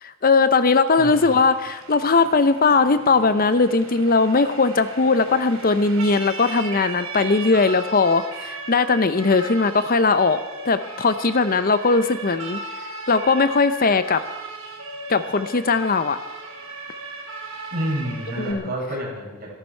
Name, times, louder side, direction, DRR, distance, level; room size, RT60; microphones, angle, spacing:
voice 1, 0.0-10.4 10.6-12.6 13.1-14.2 15.1-16.2 18.4-18.6, left 4 dB, 45° left, 12 dB, 0.8 m, -19 dB
Siren, 0.8-18.5, right 3 dB, 70° right, 3.1 m, -37 dB
voice 2, 1.0-1.4 17.7-19.5, equal, 50° right, -3 dB, 6.7 m, -29 dB
24.5 x 12.0 x 4.6 m, 1.1 s
head